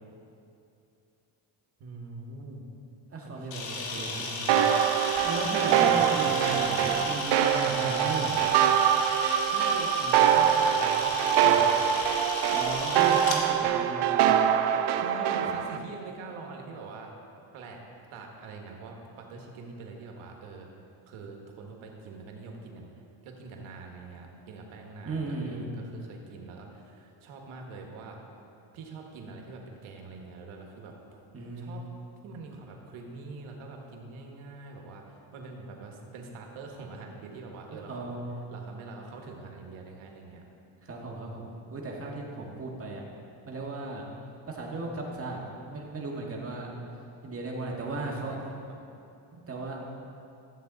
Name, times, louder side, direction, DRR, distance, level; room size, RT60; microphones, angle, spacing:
voice 1, 1.8-2.6 3.2-4.9 5.8-6.5 9.5-12.1 15.0-17.1 17.5-17.8 18.1-20.7 21.1-22.9 23.2-28.2 28.7-31.2 31.5-31.9 32.2-38.1 38.5-40.4 48.3-48.5, right 3 dB, 85° right, 1 dB, 1.6 m, -44 dB
voice 2, 3.1-4.6 5.2-8.4 12.5-14.2 25.1-25.7 31.3-31.9 37.7-38.4 40.8-43.0 43.4-44.0 44.5-45.4 45.7-46.7 47.2-48.7 49.5-49.8, right 3 dB, 30° right, -2 dB, 1.8 m, -36 dB
Camera, 3.5-13.4, left 3 dB, 80° left, 1.7 m, -35 dB
sound 1, 4.5-15.8, right 9 dB, 60° right, 0.6 m, -24 dB
13.0 x 8.0 x 4.0 m, 2.7 s
cardioid pair, 105°, 48 cm